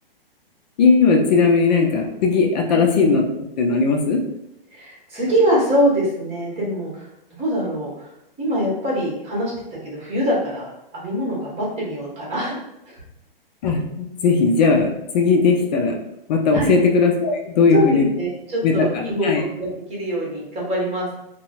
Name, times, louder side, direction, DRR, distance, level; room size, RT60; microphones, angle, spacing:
voice 1, 0.8-3.2 3.6-4.2 13.6-14.9 15.1-16.0 16.3-18.1 18.6-18.7 19.2-19.4, left 4 dB, 45° left, 1 dB, 0.5 m, -17 dB
voice 2, 4.7-8.1 8.4-9.5 9.8-12.6 12.9-13.0 16.5-16.7 17.7-21.1, equal, 20° right, -4 dB, 1.1 m, -24 dB
3.7 x 2.1 x 2.4 m, 0.83 s
hypercardioid pair, 130°, 30 cm